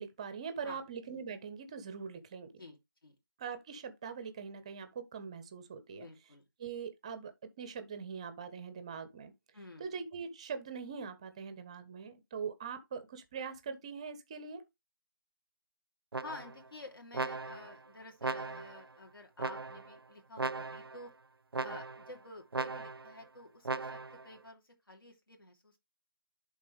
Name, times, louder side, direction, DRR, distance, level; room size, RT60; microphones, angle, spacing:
voice 1, 0.0-2.5 3.4-6.1 6.6-9.3 9.8-14.6, right 6 dB, 15° right, 0.5 m, -42 dB
voice 2, 2.6-3.1 5.9-6.4 9.5-10.0 16.2-21.1 21.6-25.8, left 2 dB, 75° left, 2.7 m, -51 dB
sound 1, 16.1-16.7 17.1-17.8 18.2-18.9 19.4-20.0 20.4-21.0 21.5-22.1 22.5-23.2 23.6-24.3, right 3 dB, 85° right, 0.5 m, -38 dB
11.0 x 3.7 x 3.3 m
figure-of-eight pair, 160°, 12 cm